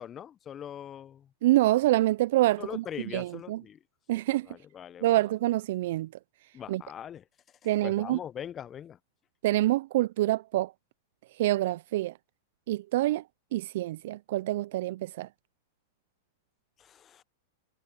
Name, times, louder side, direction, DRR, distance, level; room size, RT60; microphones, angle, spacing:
voice 1, 0.0-1.3 2.6-3.8 4.1-5.2 6.5-7.2 7.8-9.0 16.8-17.2, left 9 dB, 25° left, 1.3 m, -42 dB
voice 2, 1.4-2.8 3.1-3.6 4.1-4.5 5.0-6.1 6.7-6.8 7.6-8.2 9.4-10.7 11.4-12.1 12.7-13.2 13.5-15.3, right 16 dB, 60° right, 0.7 m, -26 dB
hypercardioid pair, 100°, 0 cm